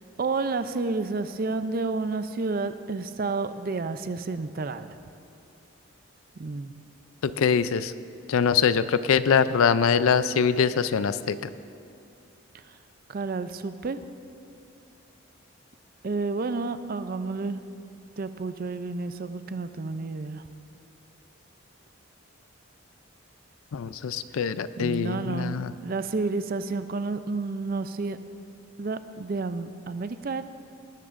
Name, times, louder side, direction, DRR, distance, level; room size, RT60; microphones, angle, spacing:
voice 1, 0.2-5.0 6.4-6.7 13.1-14.0 16.0-17.6 18.2-20.4 24.8-25.6 25.8-28.2 28.8-30.4, right 3 dB, 45° right, 11 dB, 0.4 m, -30 dB
voice 2, 7.2-7.9 8.3-11.5 23.7-25.7, left 6 dB, 75° left, 14 dB, 0.4 m, -23 dB
19.0 x 13.5 x 2.5 m, 2.6 s
head